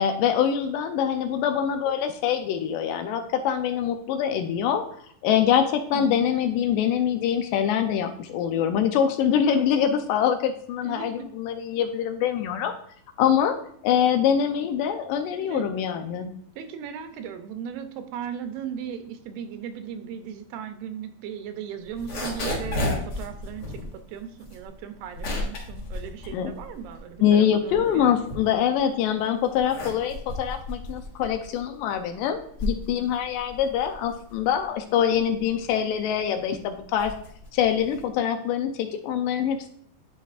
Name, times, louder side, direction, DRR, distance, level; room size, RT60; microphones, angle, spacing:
voice 1, 0.0-4.9 5.2-12.7 13.2-13.6 13.8-16.3 26.3-26.5 27.2-37.1 37.5-39.7, left 9 dB, 80° left, 6 dB, 2.1 m, -24 dB
voice 2, 5.9-6.3 10.8-11.3 15.4-15.8 16.6-28.3, right 8 dB, 85° right, 8 dB, 2.4 m, -37 dB
sound 1, 21.8-27.1 27.5-28.9 29.4-38.2, left 1 dB, 50° left, 1.3 m, -34 dB
10.0 x 4.1 x 2.4 m, 0.64 s
omnidirectional pair, 4.1 m